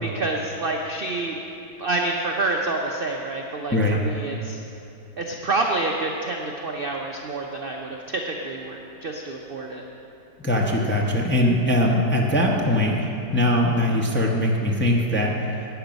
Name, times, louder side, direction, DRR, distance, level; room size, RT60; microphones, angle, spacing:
voice 1, 0.0-1.4 1.8-4.6 5.2-9.8, right 2 dB, 65° right, 1 dB, 0.5 m, -28 dB
voice 2, 10.4-15.3, left 1 dB, 10° left, -1 dB, 0.5 m, -21 dB
11.5 x 8.9 x 5.2 m, 2.9 s
omnidirectional pair, 1.8 m